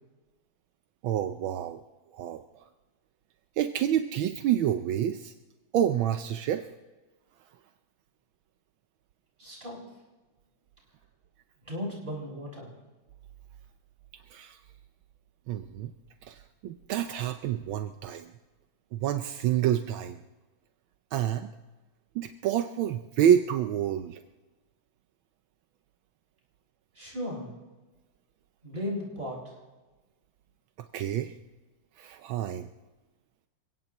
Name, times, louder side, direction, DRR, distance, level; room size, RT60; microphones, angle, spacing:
voice 1, 1.0-1.8 2.1-2.4 3.6-5.3 5.7-6.7 14.3-14.6 15.5-15.9 16.2-18.3 18.9-20.2 21.1-21.5 22.1-24.2 30.9-31.3 32.0-32.7, right 10 dB, 80° right, 7 dB, 1.5 m, -28 dB
voice 2, 9.4-9.8 11.6-12.7 26.9-27.5 28.6-29.5, left 1 dB, 25° right, -4 dB, 7.0 m, -36 dB
28.0 x 17.0 x 3.0 m, 1.2 s
omnidirectional pair, 2.2 m